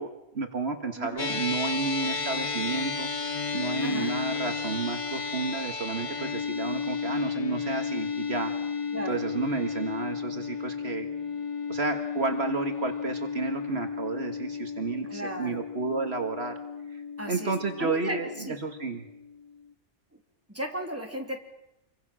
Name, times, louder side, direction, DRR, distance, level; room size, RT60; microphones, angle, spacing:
voice 1, 0.0-3.1 3.5-8.5 9.1-11.1 11.7-16.5 16.9-17.0 17.3-19.0, right 4 dB, 60° right, 5 dB, 1.9 m, -31 dB
voice 2, 1.0-1.3 3.8-4.2 8.9-9.2 15.0-15.6 17.2-17.5 17.8-18.6 20.5-21.4, right 1 dB, 10° right, 2 dB, 3.2 m, -35 dB
sound 1, 1.2-19.7, left 5 dB, 30° left, 1.1 m, -33 dB
28.0 x 24.0 x 6.2 m, 0.86 s
omnidirectional pair, 1.2 m